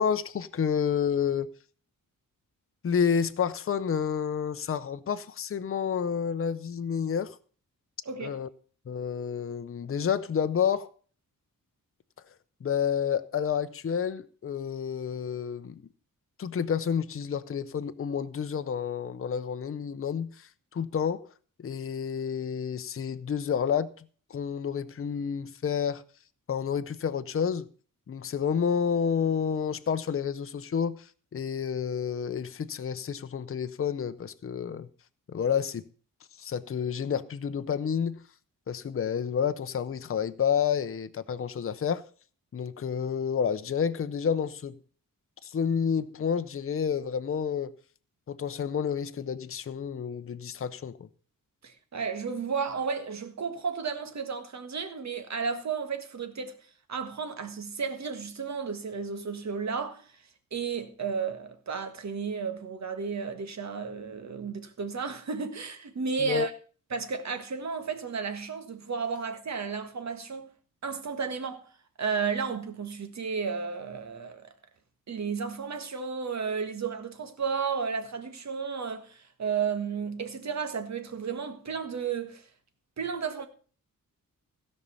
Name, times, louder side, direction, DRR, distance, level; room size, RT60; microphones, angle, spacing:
voice 1, 0.0-1.5 2.8-7.4 8.2-8.5 8.9-10.9 12.6-15.8 16.4-21.3 21.6-24.0 24.3-26.0 26.5-27.7 28.1-34.9 35.3-35.8 36.4-38.2 38.7-42.0 42.5-44.8 45.4-47.8 48.3-51.1 66.2-66.5, left 7 dB, 40° left, 0.7 m, -29 dB
voice 2, 8.0-8.4 51.6-56.6 56.9-66.5 66.9-70.5 70.8-71.7 72.0-74.5 75.1-82.5 83.0-83.5, right 5 dB, 55° right, 1.6 m, -33 dB
16.0 x 5.5 x 6.9 m
wide cardioid pair, 160°, 33 cm